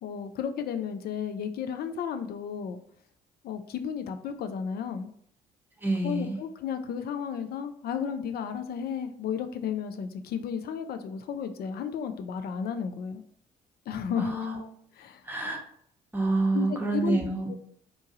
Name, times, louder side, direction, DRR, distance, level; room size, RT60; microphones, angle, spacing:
voice 1, 0.0-2.8 3.4-5.1 6.0-13.2 13.9-14.4 15.0-15.2 16.5-17.2 17.5-17.6, left 7 dB, 55° left, 8 dB, 0.4 m, -33 dB
voice 2, 5.8-6.4 14.2-14.6 15.3-15.6 16.1-17.5, right 2 dB, 10° right, 0 dB, 0.9 m, -27 dB
2.9 x 2.3 x 2.8 m, 0.65 s
hypercardioid pair, 50°, 19 cm